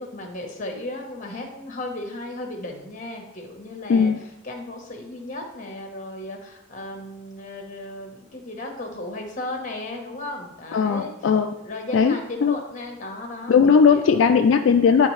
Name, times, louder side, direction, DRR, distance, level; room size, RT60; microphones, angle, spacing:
voice 1, 0.0-4.1 4.4-11.1 11.6-14.3, left 1 dB, 40° left, 2 dB, 1.0 m, -35 dB
voice 2, 3.9-4.2 10.7-11.5 11.9-12.6 13.5-15.1, left 6 dB, 75° left, 6 dB, 0.3 m, -18 dB
9.7 x 3.4 x 3.1 m, 0.92 s
head